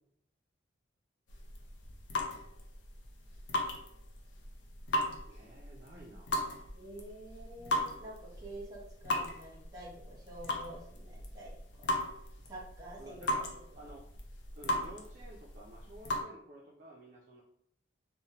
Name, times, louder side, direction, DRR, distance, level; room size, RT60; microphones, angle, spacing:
sound 1, 1.3-16.2, left 1 dB, 75° left, 0.5 m, -38 dB
voice 1, 5.3-6.7 13.0-13.5 13.8-14.1 14.5-17.4, right 1 dB, 45° right, -3 dB, 0.3 m, -52 dB
voice 2, 6.7-11.5 11.8-11.9 12.5-13.2, right 1 dB, 20° right, -5 dB, 0.9 m, -48 dB
2.7 x 2.0 x 2.8 m, 0.70 s
head